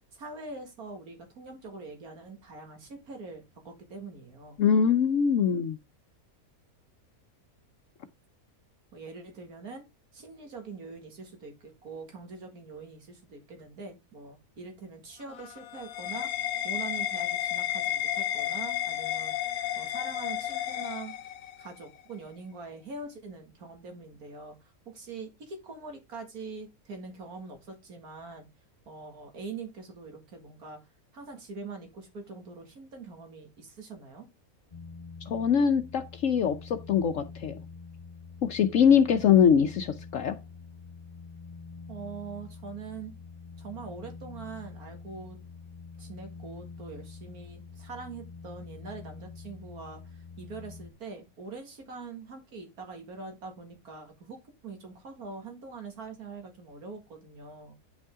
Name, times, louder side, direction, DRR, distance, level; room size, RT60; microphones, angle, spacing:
voice 1, 0.1-4.6 8.9-9.8 10.1-19.4 19.8-21.2 21.6-28.5 28.9-30.8 31.1-34.3 41.9-43.1 43.6-45.4 46.0-54.4 54.6-57.7, right 4 dB, 90° right, 2.5 m, -43 dB
voice 2, 4.6-5.8 35.3-37.6 38.4-40.4, left 7 dB, 65° left, 1.0 m, -23 dB
sound 1, 15.2-21.7, left 12 dB, 85° left, 1.3 m, -32 dB
sound 2, 34.7-50.9, left 4 dB, 30° left, 1.2 m, -46 dB
9.4 x 5.4 x 3.6 m
omnidirectional pair, 1.5 m